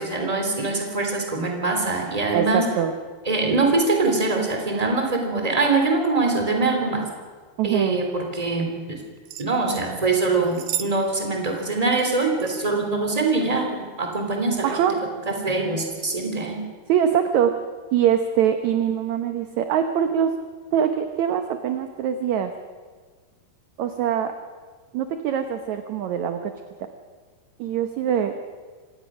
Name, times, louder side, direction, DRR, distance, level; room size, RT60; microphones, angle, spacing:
voice 1, 0.0-2.6 3.3-7.0 7.6-9.0 9.4-14.7 15.3-16.6, right 3 dB, 10° right, 2 dB, 2.7 m, -23 dB
voice 2, 2.3-3.0 7.6-8.0 14.6-15.0 16.9-17.6 17.9-20.3 20.7-22.5 23.8-24.3 24.9-26.5 26.8-26.9 27.6-28.4, right 9 dB, 70° right, 7 dB, 1.8 m, -23 dB
sound 1, 9.3-9.9 10.4-11.0 11.2-11.3 11.9-12.5 13.4-13.6 14.2-14.4, right 12 dB, 85° right, 2.9 m, -34 dB
25.5 x 19.0 x 6.3 m, 1.5 s
omnidirectional pair, 4.5 m